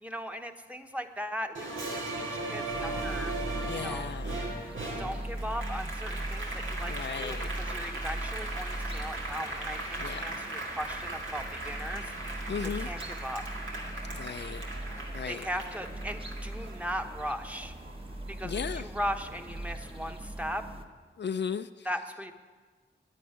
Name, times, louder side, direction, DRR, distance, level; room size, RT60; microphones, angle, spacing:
voice 1, 0.0-3.3 3.7-4.1 5.0-13.4 15.3-17.7 18.3-20.7 21.8-22.3, equal, 5° right, 6 dB, 1.1 m, -38 dB
Applause, 1.5-18.4 18.8-19.9, right 2 dB, 80° right, 2.0 m, -38 dB
sound 1, 2.7-20.8, right 1 dB, 25° right, 1.2 m, -40 dB
voice 2, 3.6-4.4 6.8-7.5 10.0-10.4 12.5-12.9 14.1-14.6 15.1-15.5 18.4-18.9 21.2-21.9, left 7 dB, 60° left, 10 dB, 0.5 m, -36 dB
9.6 x 9.5 x 9.7 m, 1.5 s
cardioid pair, 50°, 20 cm